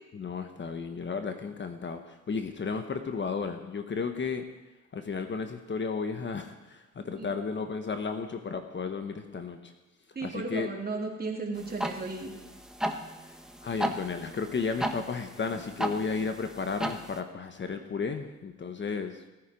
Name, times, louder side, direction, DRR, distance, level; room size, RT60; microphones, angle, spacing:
voice 1, 0.1-4.5 4.9-9.7 10.2-10.7 13.6-19.2, left 5 dB, 40° left, 7 dB, 1.2 m, -33 dB
voice 2, 10.1-12.4, right 3 dB, 30° right, 0 dB, 3.2 m, -34 dB
sound 1, 11.6-17.2, equal, ahead, 1.2 m, -36 dB
18.0 x 9.5 x 5.3 m, 1.1 s
cardioid pair, 90°, 30 cm